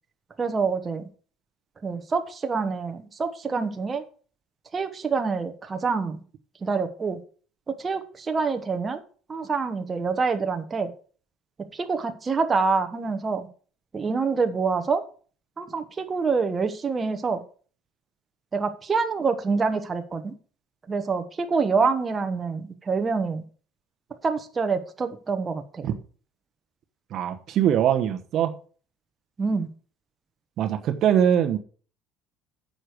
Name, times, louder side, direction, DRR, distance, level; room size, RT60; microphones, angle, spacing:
voice 1, 0.4-1.1 1.8-4.0 4.7-6.2 6.6-7.2 7.7-9.0 9.3-10.9 11.7-13.5 13.9-15.0 15.6-17.4 18.5-20.3 20.9-23.4 24.2-25.9 29.4-29.7, right 4 dB, 20° right, 1.0 m, -26 dB
voice 2, 27.1-28.5 30.6-31.6, right 9 dB, 50° right, 0.9 m, -22 dB
9.9 x 6.6 x 4.5 m
cardioid pair, 145°, 0 cm